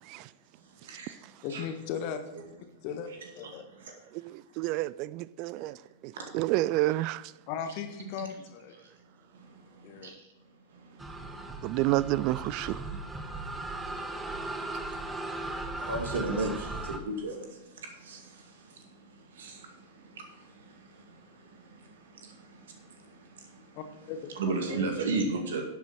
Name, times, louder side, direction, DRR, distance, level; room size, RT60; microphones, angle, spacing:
voice 1, 1.4-2.2 2.8-3.1 3.4-3.6 7.5-8.8 9.8-10.2 23.7-24.2 24.7-24.9, left 8 dB, 45° left, 1.3 m, -37 dB
voice 2, 4.1-5.8 6.0-7.3 11.6-12.8, right 17 dB, 45° right, 0.4 m, -29 dB
sound 1, 11.0-17.0, right 2 dB, 10° right, 1.3 m, -37 dB
voice 3, 15.8-17.4 18.1-18.2 19.4-19.5 24.4-25.6, right 3 dB, 60° right, 2.2 m, -31 dB
11.5 x 8.2 x 4.3 m
figure-of-eight pair, 90°, 0 cm